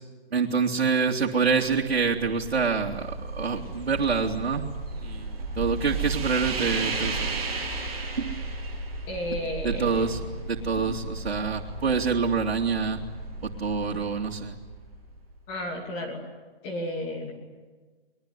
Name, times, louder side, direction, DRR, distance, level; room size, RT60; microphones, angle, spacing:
voice 1, 0.3-4.7 5.0-7.4 8.2-8.4 9.6-10.2 10.4-13.0 13.4-14.6, right 5 dB, 85° right, -2 dB, 2.8 m, -26 dB
sound 1, 1.5-15.4, right 3 dB, 15° right, 8.0 m, -34 dB
voice 2, 9.1-10.2 15.5-16.2 16.6-17.3, left 1 dB, 20° left, 1 dB, 2.8 m, -33 dB
24.5 x 22.0 x 9.7 m, 1.3 s
hypercardioid pair, 165°, 30 cm